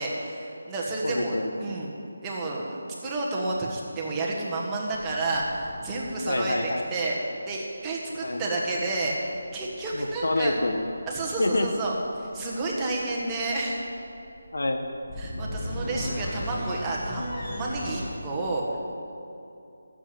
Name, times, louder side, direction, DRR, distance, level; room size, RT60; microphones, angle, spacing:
voice 1, 0.0-1.9 2.2-7.2 7.5-10.5 11.1-11.9 12.2-13.8 15.2-18.8, right 2 dB, 10° right, -4 dB, 1.4 m, -30 dB
voice 2, 1.0-1.8 6.3-6.9 8.2-8.4 9.9-10.9 11.4-11.7 14.5-14.9, left 2 dB, 80° left, 4 dB, 1.0 m, -27 dB
sound 1, 4.9-7.0 8.9-18.2, left 1 dB, 15° left, 1.8 m, -38 dB
13.0 x 7.5 x 8.9 m, 2.7 s
figure-of-eight pair, 170°, 0 cm